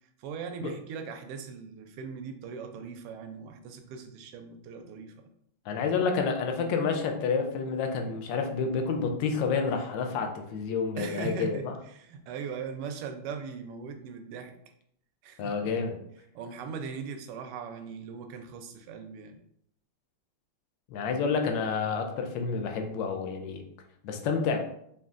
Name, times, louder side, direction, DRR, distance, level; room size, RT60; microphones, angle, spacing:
voice 1, 0.2-5.2 11.0-14.5 15.2-15.7 16.3-19.4, right 5 dB, 90° right, 6 dB, 1.5 m, -39 dB
voice 2, 5.7-11.6 15.4-16.0 20.9-23.6 24.0-24.6, left 5 dB, 70° left, 4 dB, 1.1 m, -29 dB
5.2 x 2.8 x 2.4 m, 0.71 s
omnidirectional pair, 2.4 m